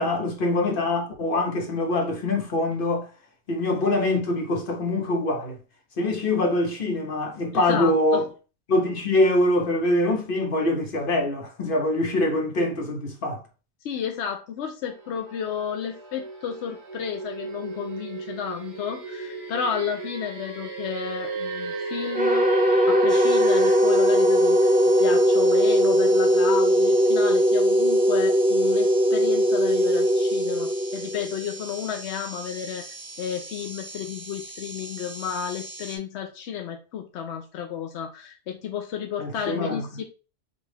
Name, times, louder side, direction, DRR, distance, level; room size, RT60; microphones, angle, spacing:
voice 1, 0.0-3.1 3.5-5.6 6.0-8.3 8.7-13.4 39.2-39.9, left 1 dB, 55° left, 1.0 m, -24 dB
voice 2, 7.5-8.2 13.8-24.7 25.0-32.8 33.2-40.0, left 8 dB, 80° left, 0.9 m, -32 dB
sound 1, 14.8-23.8, right 3 dB, 65° right, 1.8 m, -36 dB
sound 2, 22.1-31.5, equal, 10° right, 0.5 m, -20 dB
sound 3, 23.1-36.0, right 3 dB, 40° right, 0.8 m, -41 dB
5.3 x 2.3 x 3.3 m
omnidirectional pair, 1.1 m